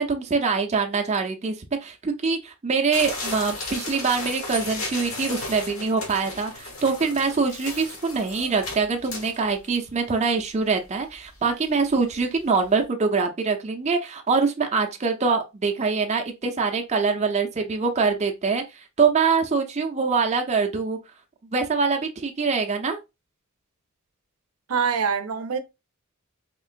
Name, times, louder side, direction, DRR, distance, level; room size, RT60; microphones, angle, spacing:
voice 1, 0.0-1.6 1.8-21.0 21.5-23.0, right 4 dB, 30° right, 0.5 m, -24 dB
sound 1, 2.9-9.7 10.2-10.3 10.5-10.6 11.1-11.4 11.8-11.9 12.2-12.3, left 2 dB, 75° left, 1.3 m, -35 dB
voice 2, 24.7-25.6, right 6 dB, 85° right, 0.6 m, -24 dB
3.7 x 2.9 x 2.4 m
head